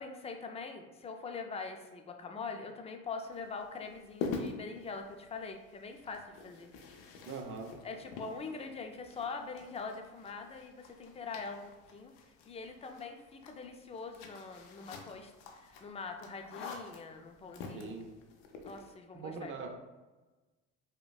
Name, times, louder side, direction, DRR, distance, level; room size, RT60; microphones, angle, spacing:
voice 1, 0.0-6.7 7.8-11.7 11.9-12.1 12.5-17.9 18.6-19.5, left 4 dB, 20° left, 4 dB, 0.4 m, -43 dB
sound 1, 3.3-18.9, left 4 dB, 85° left, 0.5 m, -46 dB
voice 2, 7.3-7.8 17.7-18.1 19.1-19.8, right 4 dB, 40° right, 3 dB, 0.6 m, -42 dB
5.0 x 2.2 x 2.3 m, 1.2 s
supercardioid pair, 100°, 31 cm